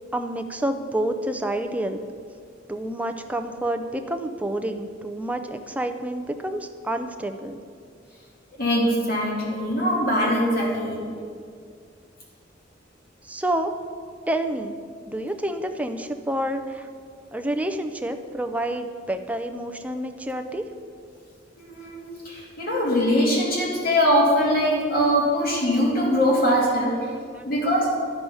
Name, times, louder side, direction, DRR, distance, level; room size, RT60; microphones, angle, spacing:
voice 1, 0.1-2.0 2.7-7.6 13.2-13.7 14.3-14.8 15.1-16.9 17.3-20.6 27.0-27.4, right 1 dB, 10° right, 6 dB, 0.5 m, -28 dB
voice 2, 8.6-11.1 21.6-26.9 27.5-27.9, equal, 55° left, -4 dB, 2.7 m, -22 dB
12.5 x 4.7 x 5.5 m, 2.2 s
head